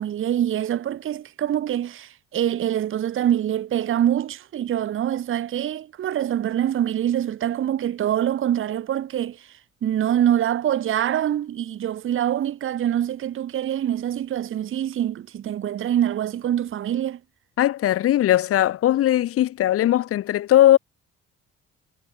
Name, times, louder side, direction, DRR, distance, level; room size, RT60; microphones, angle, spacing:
voice 1, 0.0-9.5 9.8-17.2, right 11 dB, 45° right, 0.6 m, -25 dB
voice 2, 17.6-20.8, left 13 dB, 50° left, 0.4 m, -19 dB
cardioid pair, 90°, 30 cm